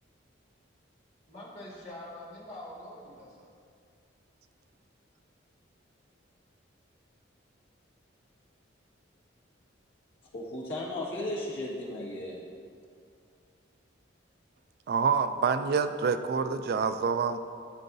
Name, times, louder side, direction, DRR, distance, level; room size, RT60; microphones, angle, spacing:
voice 1, 1.3-3.5, left 1 dB, 35° left, -7 dB, 1.8 m, -45 dB
voice 2, 10.3-12.4, left 1 dB, 70° left, -6 dB, 1.9 m, -35 dB
voice 3, 14.9-17.4, right 5 dB, 55° right, 10 dB, 0.3 m, -27 dB
13.0 x 5.5 x 2.7 m, 2.2 s
head